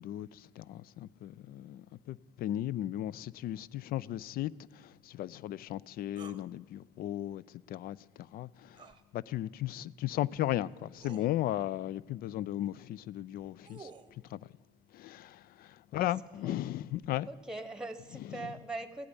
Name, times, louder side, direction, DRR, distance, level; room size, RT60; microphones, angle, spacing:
voice 1, 0.0-13.9 14.2-14.4 14.9-17.3 18.3-18.5, left 13 dB, 60° left, 0.4 m, -36 dB
sound 1, 6.2-6.4 8.7-9.0 10.3-10.4 11.0-11.3 13.3-14.1, right 5 dB, 25° right, 0.9 m, -51 dB
voice 2, 17.3-19.1, right 2 dB, 5° right, 1.2 m, -41 dB
15.5 x 8.5 x 9.7 m
cardioid pair, 110°, 17 cm